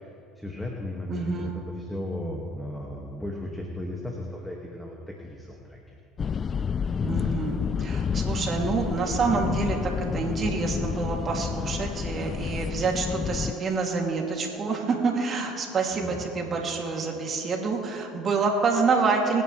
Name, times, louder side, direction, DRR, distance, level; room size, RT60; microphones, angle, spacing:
voice 1, 0.4-5.0 5.2-6.0 15.9-16.2, left 1 dB, 5° left, -1 dB, 1.9 m, -35 dB
voice 2, 1.1-1.6 7.0-19.4, right 4 dB, 45° right, 0 dB, 2.6 m, -27 dB
sound 1, 6.2-13.5, left 6 dB, 35° left, 0.3 m, -29 dB
24.0 x 10.0 x 3.3 m, 2.6 s
hypercardioid pair, 75°, 0 cm